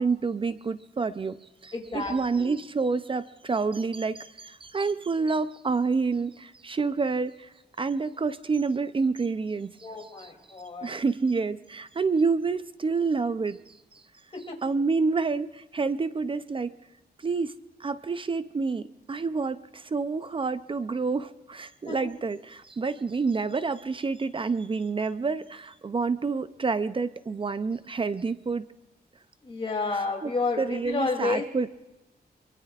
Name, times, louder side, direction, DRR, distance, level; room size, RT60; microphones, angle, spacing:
voice 1, 0.0-7.5 7.8-9.7 10.2-10.3 10.8-14.0 14.6-16.8 17.2-17.5 17.8-28.7 30.2-30.3 30.6-31.7, right 4 dB, 30° right, 13 dB, 0.5 m, -28 dB
voice 2, 1.7-2.5 9.8-11.0 14.5-14.6 21.9-22.1 29.4-31.4, left 3 dB, 35° left, 0 dB, 2.8 m, -31 dB
24.0 x 23.5 x 2.4 m, 1.0 s
wide cardioid pair, 130°, 17 cm